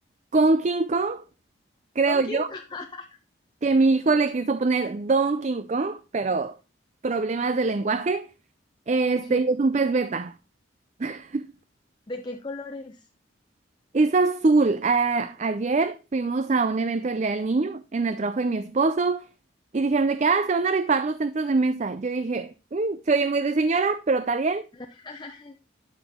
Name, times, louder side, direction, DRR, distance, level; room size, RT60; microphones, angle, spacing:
voice 1, 0.3-1.2 2.0-2.5 3.6-6.6 7.0-8.3 8.9-10.3 11.0-11.5 13.9-19.3 19.7-24.6, right 3 dB, 35° right, 0.4 m, -23 dB
voice 2, 2.1-3.1 9.2-9.4 12.1-13.1 24.7-25.6, left 2 dB, 25° left, 0.6 m, -36 dB
12.0 x 6.0 x 3.6 m
head